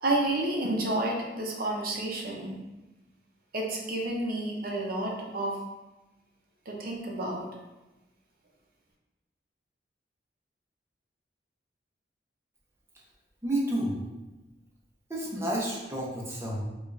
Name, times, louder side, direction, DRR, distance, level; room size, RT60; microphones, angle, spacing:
voice 1, 0.0-2.6 3.5-5.6 6.7-7.5, right 1 dB, 55° right, -1 dB, 0.7 m, -30 dB
voice 2, 13.4-14.0 15.1-16.6, right 1 dB, 15° right, -4 dB, 0.7 m, -30 dB
4.8 x 2.4 x 2.6 m, 1.1 s
head